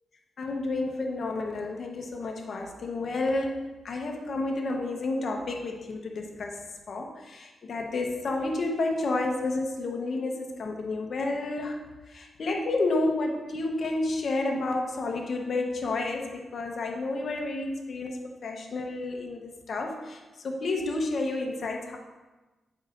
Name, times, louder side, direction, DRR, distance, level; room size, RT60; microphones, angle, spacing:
voice 1, 0.4-3.5 3.8-6.6 6.9-11.8 12.1-22.0, left 2 dB, 60° left, 2 dB, 0.9 m, -30 dB
9.2 x 5.4 x 2.5 m, 1.2 s
cardioid pair, 95°, 0 cm